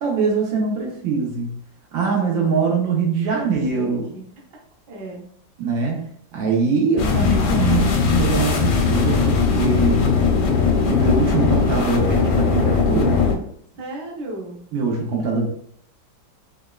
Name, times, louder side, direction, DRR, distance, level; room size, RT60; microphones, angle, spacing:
voice 1, 0.0-1.5 1.9-4.1 5.6-10.1 10.9-13.3 14.7-15.4, right 4 dB, 90° right, -1 dB, 1.6 m, -22 dB
voice 2, 2.1-2.6 3.3-4.3 4.9-5.3 13.7-14.6, right 2 dB, 65° right, -2 dB, 1.4 m, -35 dB
sound 1, 7.0-13.3, left 5 dB, 85° left, 1.5 m, -19 dB
5.0 x 2.3 x 2.3 m, 0.65 s
omnidirectional pair, 2.0 m